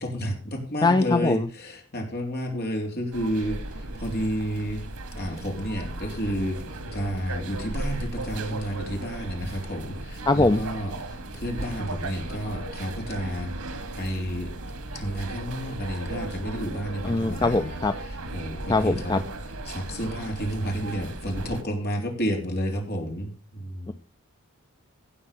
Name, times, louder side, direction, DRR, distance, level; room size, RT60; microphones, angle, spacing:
voice 1, 0.0-4.8 5.1-6.6 6.9-13.5 14.0-14.5 14.9-17.8 18.3-19.2 19.7-23.9, equal, 45° left, 2 dB, 3.5 m, -31 dB
voice 2, 0.8-1.5 10.3-10.6 17.0-18.0 18.7-19.2 23.9-24.0, left 2 dB, 20° left, 9 dB, 0.5 m, -22 dB
sound 1, 3.1-21.6, right 2 dB, 85° right, 1.9 m, -36 dB
16.0 x 5.5 x 6.8 m, 0.38 s
head